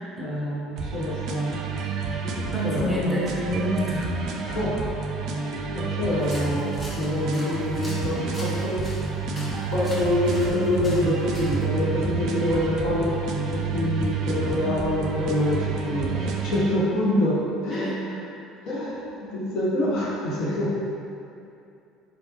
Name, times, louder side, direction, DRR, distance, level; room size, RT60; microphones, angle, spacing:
voice 1, 0.2-1.6 2.2-3.0 4.4-4.8 5.7-8.9 9.7-13.1 13.5-18.2 18.6-20.7, left 1 dB, 60° left, -7 dB, 1.0 m, -26 dB
sound 1, 0.8-16.8, right 4 dB, 60° right, 0.4 m, -29 dB
voice 2, 2.5-4.1 17.7-18.2, equal, 5° left, -7 dB, 1.1 m, -28 dB
sound 2, 6.1-11.7, equal, 20° left, 1.3 m, -42 dB
4.0 x 3.3 x 3.1 m, 2.6 s
hypercardioid pair, 65°, 0 cm